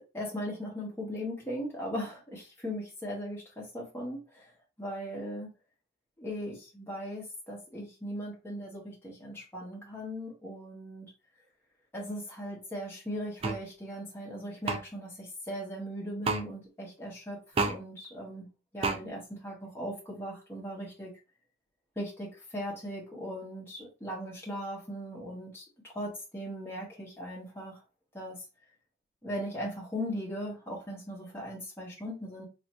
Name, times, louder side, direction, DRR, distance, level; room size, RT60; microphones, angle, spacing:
voice 1, 0.1-4.5 4.8-5.5 6.2-11.1 11.9-18.5 18.7-21.1 22.0-25.6 25.9-27.8 28.1-28.4 29.2-32.5, equal, 10° left, -4 dB, 1.0 m, -38 dB
sound 1, 13.4-13.6 14.7-14.8 16.2-16.4 17.6-17.8 18.8-19.0, right 3 dB, 25° right, 0.3 m, -28 dB
2.5 x 2.4 x 4.1 m, 0.31 s
head